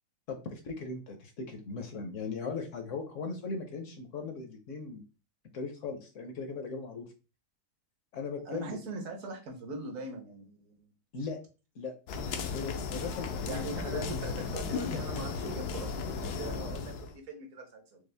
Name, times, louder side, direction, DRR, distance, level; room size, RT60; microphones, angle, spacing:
voice 1, 0.3-5.0 5.5-7.1 8.1-8.8 11.1-11.4 11.8-11.9 12.5-14.1, left 4 dB, 60° left, 5 dB, 1.0 m, -38 dB
voice 2, 8.4-10.9 13.5-18.0, right 3 dB, 60° right, 3 dB, 1.3 m, -41 dB
sound 1, 12.1-17.1, left 5 dB, 80° left, 1.2 m, -35 dB
5.1 x 2.0 x 3.3 m, 0.32 s
omnidirectional pair, 1.7 m